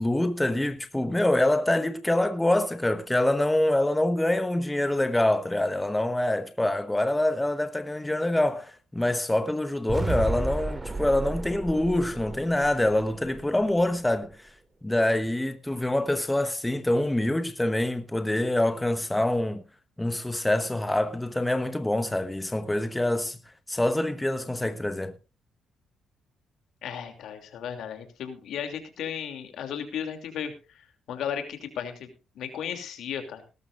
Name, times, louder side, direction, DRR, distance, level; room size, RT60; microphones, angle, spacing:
voice 1, 0.0-14.5 14.8-19.6 20.0-23.4 23.7-25.2, left 1 dB, 10° left, 1.1 m, -25 dB
sound 1, 9.9-14.0, right 2 dB, 20° right, 2.5 m, -33 dB
voice 2, 26.8-30.5 31.1-32.1 32.4-33.4, left 8 dB, 75° left, 2.9 m, -34 dB
19.0 x 12.5 x 2.6 m
cardioid pair, 90°, 0 cm